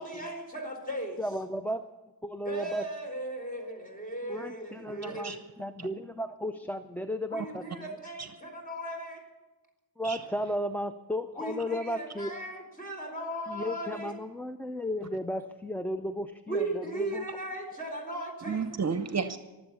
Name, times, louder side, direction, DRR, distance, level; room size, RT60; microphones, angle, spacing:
voice 1, 0.0-1.2 2.4-5.4 7.3-9.2 11.3-14.1 16.5-18.6, right 1 dB, 20° left, 3 dB, 4.4 m, -37 dB
voice 2, 1.2-1.8 2.2-2.8 4.2-7.6 10.0-12.3 13.5-17.2, equal, 5° left, 6 dB, 0.5 m, -34 dB
voice 3, 5.0-5.4 5.8-5.9 8.2-8.3 10.0-10.2 18.5-19.4, right 5 dB, 45° right, 10 dB, 0.8 m, -32 dB
23.0 x 8.0 x 7.0 m, 1.1 s
cardioid pair, 100°, 38 cm